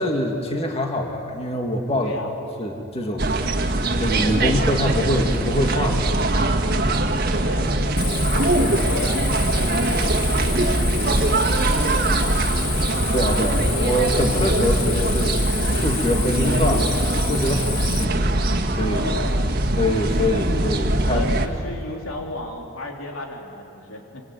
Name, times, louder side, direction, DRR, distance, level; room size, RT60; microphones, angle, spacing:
voice 1, 0.0-2.1 2.6-3.7 4.0-6.5 13.1-15.4 15.7-18.2 18.8-19.0 19.8-21.2, left 1 dB, 30° left, 2 dB, 2.2 m, -24 dB
voice 2, 2.0-2.3 7.4-12.3 18.8-19.5 21.1-24.2, left 2 dB, 85° left, 1 dB, 3.4 m, -34 dB
sound 1, 3.2-21.5, right 1 dB, 50° right, 1.8 m, -22 dB
Cricket, 8.0-18.0, left 9 dB, 55° left, 1.5 m, -31 dB
25.0 x 24.0 x 9.4 m, 2.9 s
head